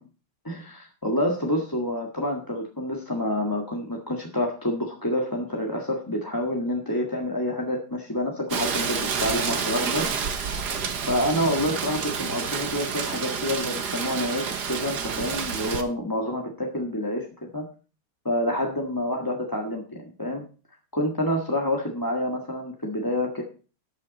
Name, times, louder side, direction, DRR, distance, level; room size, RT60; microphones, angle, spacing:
voice 1, 0.4-10.1 11.1-17.6 18.2-20.4 20.9-23.4, left 1 dB, 10° left, 0 dB, 1.5 m, -28 dB
Rain, 8.5-15.8, right 6 dB, 55° right, 1.8 m, -29 dB
14.0 x 8.9 x 4.1 m, 0.36 s
omnidirectional pair, 2.4 m